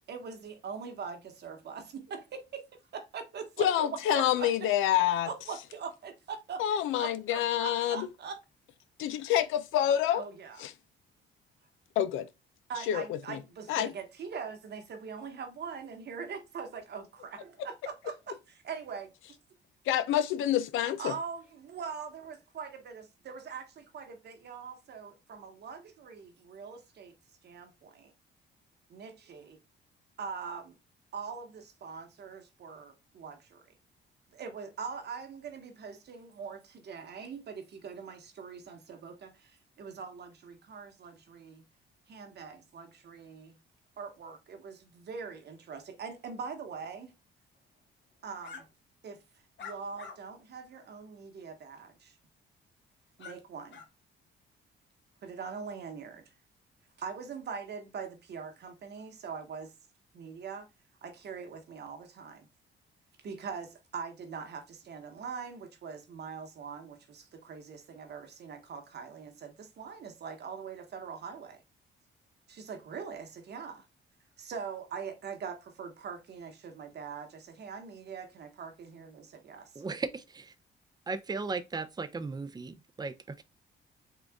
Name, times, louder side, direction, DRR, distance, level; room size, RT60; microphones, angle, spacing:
voice 1, 0.1-2.6 2.9-4.2 5.2-6.6 7.0-8.4 10.1-10.6 12.7-18.4 18.6-19.4 20.8-27.1 27.4-28.1 28.9-29.6 30.2-30.8 31.1-33.6 34.3-41.6 42.1-43.6 44.0-47.1 48.2-48.7 49.0-49.2 49.6-52.1 53.2-53.8 55.2-56.2 57.0-59.7 60.1-60.7 61.0-62.5 63.2-71.6 72.5-73.8 74.4-79.8, right 6 dB, 55° right, 1.0 m, -42 dB
voice 2, 3.6-5.3 6.6-8.1 9.0-10.2 10.6-10.7 12.0-12.3 12.8-13.4 13.7-13.9 19.9-21.1, left 11 dB, 85° left, 0.5 m, -27 dB
sound 1, 48.4-48.6 49.6-50.2 50.7-50.8 53.2-53.4 53.7-53.9, left 6 dB, 65° left, 1.1 m, -45 dB
voice 3, 79.8-80.5 81.1-83.4, right 4 dB, 20° right, 0.5 m, -36 dB
3.8 x 2.4 x 3.4 m
cardioid pair, 90°, 20 cm